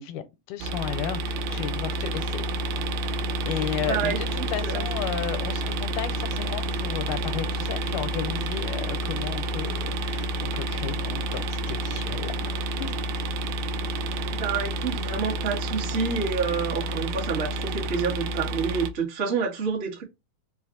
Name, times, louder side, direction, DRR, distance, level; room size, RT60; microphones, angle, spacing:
voice 1, 0.0-2.5 3.4-12.9, left 10 dB, 85° left, 2.2 m, -34 dB
sound 1, 0.6-18.9, right 1 dB, 80° right, 1.7 m, -29 dB
voice 2, 3.7-4.8 14.3-20.0, right 5 dB, 40° right, 0.8 m, -28 dB
5.2 x 2.4 x 3.8 m
omnidirectional pair, 3.7 m